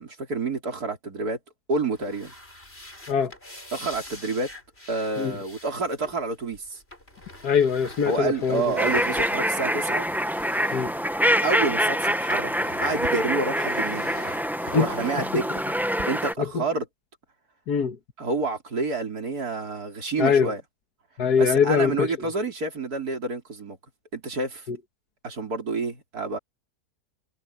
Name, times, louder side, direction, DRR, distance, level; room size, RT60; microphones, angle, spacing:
voice 1, 0.0-1.4 1.7-2.3 3.7-4.5 4.9-6.8 8.0-10.1 11.4-12.5 12.8-14.1 14.7-15.6 16.1-16.9 18.2-20.6 21.4-23.8 24.1-24.7 25.2-26.4, right 3 dB, 75° right, 4.3 m, -28 dB
sound 1, 1.9-11.7 12.0-16.0, left 1 dB, 40° left, 7.0 m, -43 dB
voice 2, 7.4-8.8 10.7-10.9 14.7-14.9 15.3-15.4 16.5-16.6 17.7-18.0 20.2-20.5 21.2-22.1 24.7-24.8, left 6 dB, 85° left, 2.0 m, -22 dB
sound 2, 8.8-16.3, equal, ahead, 0.6 m, -25 dB
omnidirectional pair, 1.6 m